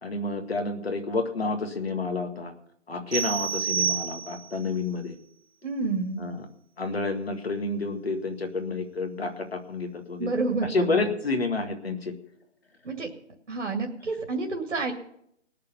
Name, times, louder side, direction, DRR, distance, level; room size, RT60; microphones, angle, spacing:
voice 1, 0.0-2.5 2.9-5.2 6.2-6.5 6.8-10.3 10.6-12.1, left 3 dB, 55° left, 5 dB, 2.0 m, -29 dB
sound 1, 3.1-4.6, right 7 dB, 5° right, 3.6 m, -29 dB
voice 2, 5.6-6.2 10.2-11.0 12.8-13.1 13.5-14.9, right 3 dB, 65° right, 1 dB, 2.2 m, -29 dB
18.5 x 6.8 x 7.0 m, 0.73 s
hypercardioid pair, 180°, 37 cm